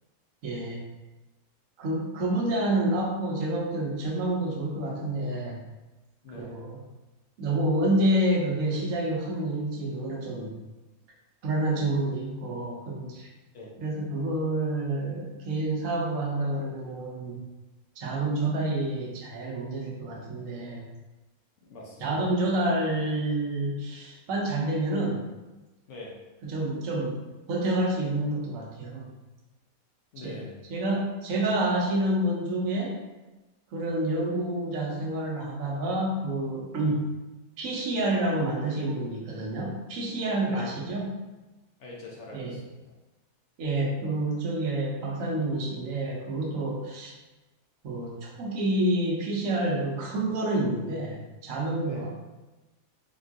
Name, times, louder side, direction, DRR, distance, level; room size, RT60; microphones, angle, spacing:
voice 1, 0.4-0.8 1.8-5.6 6.4-6.8 7.4-10.5 11.4-13.3 13.8-17.4 18.0-20.8 22.0-25.2 26.4-27.2 27.5-29.1 30.2-30.4 30.7-33.0 33.7-37.0 37.6-41.1 42.3-42.6 43.6-47.1 47.8-51.2 51.4-52.1, right 1 dB, 70° right, -1 dB, 1.0 m, -28 dB
voice 2, 6.2-6.6 13.5-13.8 21.7-22.4 25.9-26.2 30.1-30.6 40.4-40.8 41.8-42.8 51.8-52.1, left 2 dB, 65° left, -2 dB, 0.8 m, -43 dB
3.5 x 2.3 x 2.5 m, 1.1 s
omnidirectional pair, 1.5 m